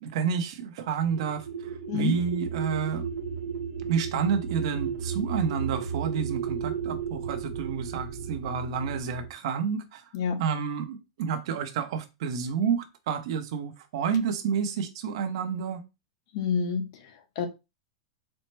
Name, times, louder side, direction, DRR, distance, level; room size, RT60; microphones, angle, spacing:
voice 1, 0.0-3.1 3.9-10.1 10.4-15.8, right 6 dB, 55° right, 0.7 m, -29 dB
sound 1, 1.0-9.3, right 7 dB, 80° right, 1.1 m, -34 dB
voice 2, 1.9-2.2 10.1-10.4 16.3-17.5, left 6 dB, 50° left, 0.7 m, -29 dB
4.2 x 2.0 x 3.2 m
supercardioid pair, 155°, 3 cm